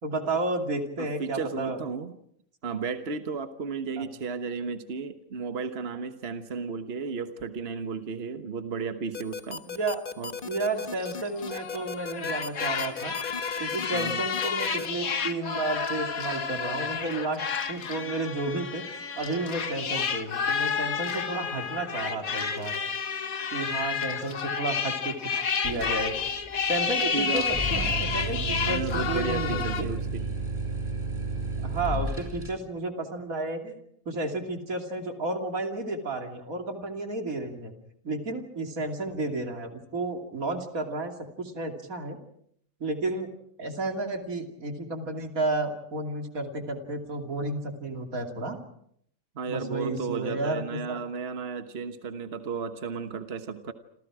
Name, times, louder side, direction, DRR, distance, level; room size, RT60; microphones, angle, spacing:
voice 1, 0.0-1.8 4.0-4.1 9.6-10.0 10.4-13.1 13.6-22.8 23.5-26.2 26.7-29.9 31.6-33.8 34.1-37.7 38.0-42.2 42.8-43.3 43.6-48.6 49.5-51.0, right 2 dB, 85° right, 4 dB, 3.2 m, -32 dB
voice 2, 1.0-2.2 2.6-9.6 10.2-10.3 13.9-14.2 27.1-27.5 28.6-30.3 49.3-53.7, right 5 dB, 50° right, 8 dB, 1.5 m, -34 dB
sound 1, 9.1-14.9, left 5 dB, 40° left, 1.3 m, -36 dB
sound 2, 10.8-29.8, left 6 dB, 90° left, 1.9 m, -31 dB
sound 3, 25.6-26.6 26.9-27.0 27.3-32.5, right 2 dB, 20° right, 4.8 m, -32 dB
28.0 x 27.5 x 4.9 m, 0.68 s
omnidirectional pair, 1.4 m